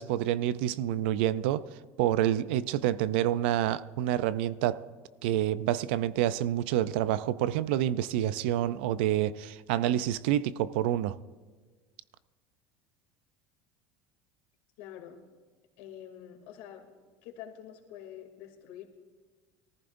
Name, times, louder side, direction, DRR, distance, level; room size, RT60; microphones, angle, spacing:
voice 1, 0.0-1.7 2.0-4.9 5.2-11.2, right 12 dB, 80° right, 0.5 m, -28 dB
voice 2, 14.8-15.2 15.8-16.9 17.2-18.9, left 10 dB, 70° left, 2.8 m, -46 dB
23.5 x 14.5 x 2.6 m
cardioid pair, 155°, 6 cm